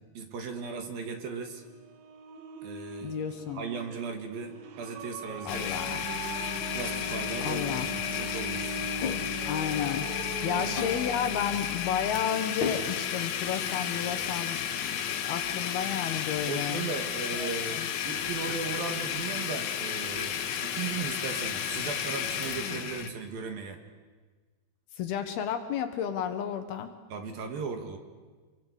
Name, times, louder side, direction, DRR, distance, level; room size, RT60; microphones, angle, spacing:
voice 1, 0.1-1.6 2.6-3.2 3.5-6.1 6.7-8.8 10.5-10.9 16.5-20.4 20.6-23.8 27.1-28.0, right 5 dB, 60° right, 5 dB, 3.3 m, -37 dB
sound 1, 1.5-12.0, right 6 dB, 80° right, 3.7 m, -42 dB
voice 2, 3.0-3.6 5.5-6.0 7.4-7.9 9.5-10.1 10.4-16.9 17.3-17.9 25.0-26.9, left 8 dB, 70° left, 8 dB, 2.9 m, -32 dB
Domestic sounds home sounds, 5.5-23.1, left 9 dB, 90° left, 4.0 m, -33 dB
sound 2, 9.0-9.6 10.8-11.2 12.6-13.3, left 5 dB, 50° left, 2.8 m, -35 dB
27.0 x 23.5 x 8.2 m, 1.4 s
omnidirectional pair, 5.2 m